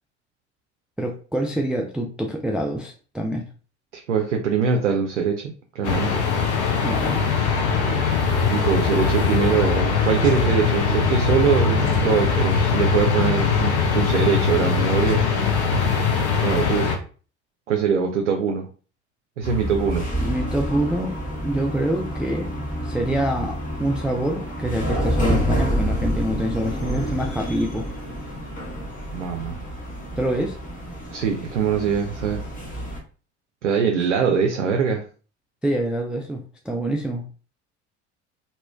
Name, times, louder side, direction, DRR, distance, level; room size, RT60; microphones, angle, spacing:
voice 1, 1.0-3.4 6.8-7.2 20.2-22.5 22.8-27.9 30.2-30.6 35.6-37.2, right 1 dB, 5° right, 2 dB, 0.3 m, -26 dB
voice 2, 3.9-6.2 8.5-15.2 16.4-16.9 17.7-18.7 19.4-20.1 29.1-29.6 31.1-32.4 33.6-35.0, right 6 dB, 85° right, 3 dB, 0.5 m, -23 dB
sound 1, 5.8-17.0, left 5 dB, 70° left, 0.7 m, -21 dB
sound 2, 19.4-33.0, equal, 20° left, 1.1 m, -28 dB
3.0 x 2.7 x 2.2 m, 0.38 s
figure-of-eight pair, 60°, 35 cm